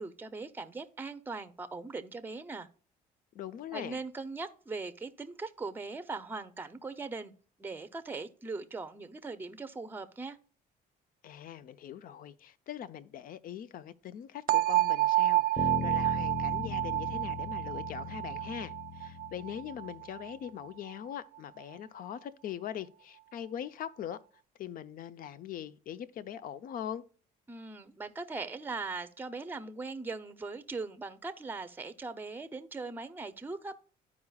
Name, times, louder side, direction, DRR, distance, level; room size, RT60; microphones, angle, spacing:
voice 1, 0.0-2.7 3.7-7.3 7.6-10.4 27.5-33.8, right 3 dB, 10° right, 0.6 m, -40 dB
voice 2, 3.3-4.0 11.2-24.2 24.6-27.0, left 10 dB, 55° left, 0.6 m, -42 dB
sound 1, 14.5-20.3, right 16 dB, 60° right, 0.4 m, -29 dB
Bass guitar, 15.6-20.0, left 4 dB, 25° left, 1.2 m, -39 dB
12.5 x 4.8 x 2.3 m
cardioid pair, 110°, 17 cm